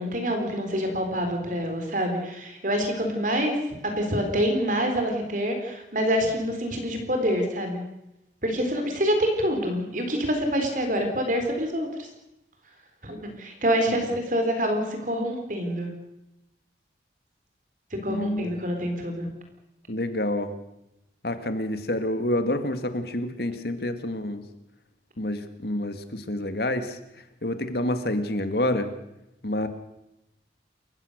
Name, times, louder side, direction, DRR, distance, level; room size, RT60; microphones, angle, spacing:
voice 1, 0.0-3.6 3.8-7.8 8.4-12.1 13.0-15.9 17.9-19.3, equal, 45° right, 4 dB, 3.7 m, -26 dB
voice 2, 18.1-18.5 19.9-20.5 21.2-24.4 25.2-27.0 27.4-28.9 29.4-29.7, left 1 dB, 60° left, 9 dB, 2.0 m, -28 dB
29.0 x 15.5 x 6.6 m, 0.87 s
head